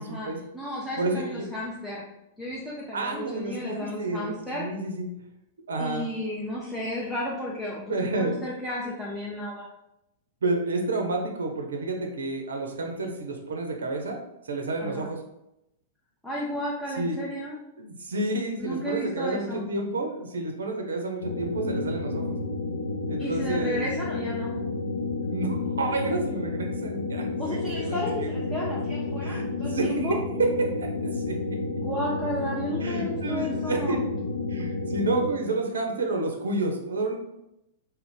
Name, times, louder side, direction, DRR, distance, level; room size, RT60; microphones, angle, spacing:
voice 1, 0.0-0.4 1.0-1.5 2.9-5.1 5.7-6.1 7.9-8.5 10.4-15.2 17.0-17.2 17.8-22.4 23.1-23.9 25.2-28.4 29.2-31.6 32.8-34.0 34.5-37.2, right 2 dB, 75° right, 3 dB, 0.5 m, -30 dB
voice 2, 0.5-2.0 2.4-4.7 5.8-9.7 14.8-15.1 16.2-17.6 18.6-19.6 23.2-24.6 27.4-30.2 31.7-34.0 34.6-34.7, left 1 dB, 5° left, -6 dB, 0.6 m, -33 dB
sound 1, 21.2-35.3, left 3 dB, 85° left, 0.4 m, -31 dB
2.4 x 2.2 x 3.6 m, 0.86 s
figure-of-eight pair, 105°, 0 cm